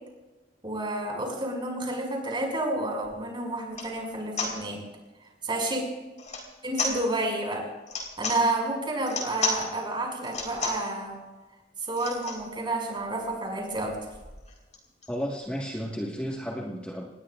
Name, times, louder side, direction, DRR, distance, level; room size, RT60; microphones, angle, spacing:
voice 1, 0.6-4.8 5.4-5.8 6.6-7.6 8.2-11.2 11.9-14.0, right 2 dB, 30° right, 0 dB, 5.9 m, -30 dB
sound 1, 3.0-3.1 3.7-3.9 4.4-4.5 6.2-6.5 6.7-7.0 7.8-8.4 9.0-9.6 10.2-10.9 11.9-12.4 13.0-13.1 13.2-13.4 13.7-15.1, left 3 dB, 45° left, 4.0 m, -32 dB
voice 2, 15.1-17.1, equal, 5° left, -2 dB, 1.6 m, -33 dB
27.5 x 20.0 x 2.5 m, 1.2 s
head